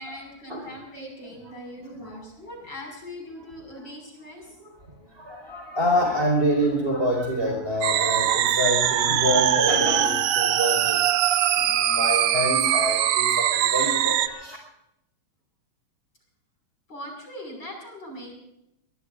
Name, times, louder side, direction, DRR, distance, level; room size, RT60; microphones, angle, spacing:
voice 1, 0.0-4.5 16.9-18.3, equal, 35° left, 1 dB, 6.5 m, -40 dB
voice 2, 5.1-14.6, equal, 20° right, 1 dB, 5.1 m, -26 dB
sound 1, 7.8-14.3, right 11 dB, 75° right, 2.0 m, -22 dB
23.5 x 22.5 x 2.6 m, 0.82 s
omnidirectional pair, 3.4 m